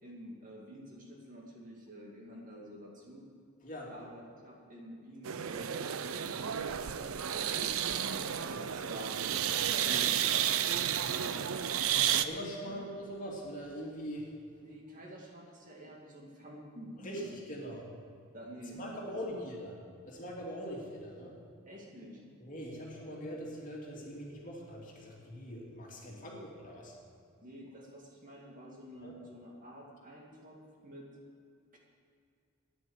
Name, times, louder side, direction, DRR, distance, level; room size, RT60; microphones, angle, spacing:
voice 1, 0.0-3.2 3.9-11.8 12.6-12.8 14.6-17.3 18.3-19.4 21.7-22.2 26.1-26.4 27.4-30.6 30.8-31.1 31.7-31.8, equal, 40° right, -2 dB, 2.3 m, -49 dB
voice 2, 3.6-4.1 12.1-14.3 17.0-17.9 18.7-19.8 20.1-21.4 22.4-26.9 29.0-29.1, equal, 40° left, -3 dB, 2.7 m, -42 dB
sound 1, 5.2-12.2, right 9 dB, 85° right, 0.6 m, -32 dB
12.5 x 10.0 x 7.3 m, 2.4 s
head